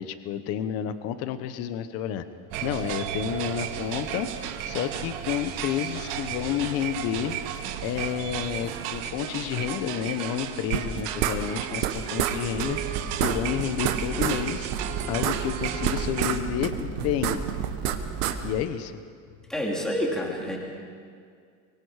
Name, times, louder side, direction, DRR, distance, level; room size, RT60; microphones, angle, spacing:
voice 1, 0.0-2.2 2.6-4.3 4.7-7.4 7.8-12.8 13.2-14.7 15.1-17.4 18.4-19.0, left 10 dB, 35° left, 11 dB, 0.9 m, -30 dB
sound 1, 2.5-16.4, right 10 dB, 50° right, 1.3 m, -34 dB
sound 2, 10.7-11.9 12.2-12.3 12.6-12.7 12.9-14.4 14.7-16.4 16.6-18.3, right 12 dB, 75° right, 1.5 m, -27 dB
sound 3, 12.5-18.6, right 5 dB, 30° right, 1.9 m, -37 dB
voice 2, 19.5-20.6, equal, ahead, -2 dB, 2.5 m, -28 dB
24.0 x 23.5 x 4.9 m, 2.2 s
cardioid pair, 180°, 44 cm